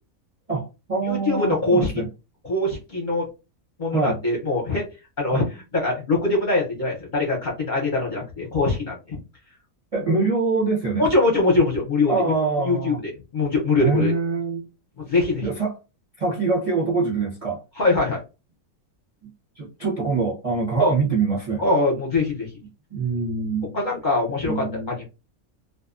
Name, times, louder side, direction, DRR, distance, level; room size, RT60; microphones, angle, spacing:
voice 1, 0.5-2.1 3.9-4.2 5.3-5.5 9.9-11.1 12.1-13.0 13.8-14.7 15.4-15.7 16.2-17.6 19.6-21.6 22.9-23.8 24.4-25.0, right 4 dB, 45° right, 0.5 m, -24 dB
voice 2, 1.0-2.0 2.4-3.3 3.8-4.9 5.2-9.2 10.1-10.2 11.0-12.1 12.6-14.1 15.1-15.5 17.8-18.2 20.8-20.9 21.6-22.5 23.7-25.1, left 2 dB, 45° left, 0.7 m, -22 dB
2.4 x 2.2 x 2.4 m
omnidirectional pair, 1.5 m